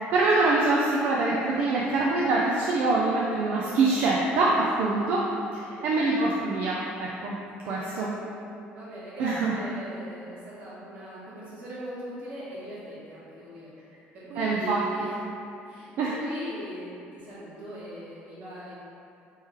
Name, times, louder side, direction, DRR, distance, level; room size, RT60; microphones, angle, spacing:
voice 1, 0.1-5.2 5.5-7.4 7.7-8.1 9.2-9.5 14.4-14.8 16.0-16.2, right 3 dB, 60° right, -4 dB, 0.4 m, -24 dB
voice 2, 5.5-5.9 7.6-8.4 8.7-13.7 14.1-15.2 15.6-18.7, equal, 40° right, -9 dB, 1.4 m, -40 dB
3.6 x 3.1 x 4.4 m, 2.6 s
cardioid pair, 175°, 4 cm